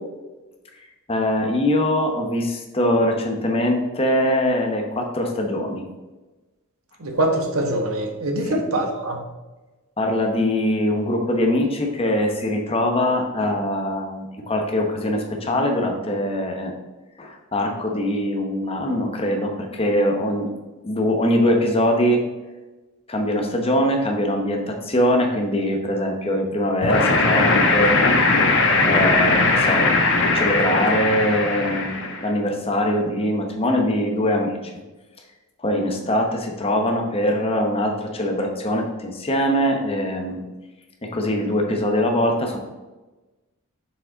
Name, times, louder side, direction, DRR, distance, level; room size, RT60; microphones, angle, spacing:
voice 1, 1.1-5.8 8.4-8.6 10.0-16.7 17.2-20.5 20.8-22.2 23.1-28.1 28.8-29.9 30.3-32.0 32.2-34.7 35.6-40.4 41.0-42.6, left 1 dB, 25° left, 2 dB, 0.9 m, -22 dB
voice 2, 7.0-9.2, right 1 dB, 75° right, 3 dB, 1.1 m, -23 dB
sound 1, 26.8-32.3, left 3 dB, 60° left, 1.0 m, -19 dB
6.6 x 5.0 x 3.9 m, 1.1 s
head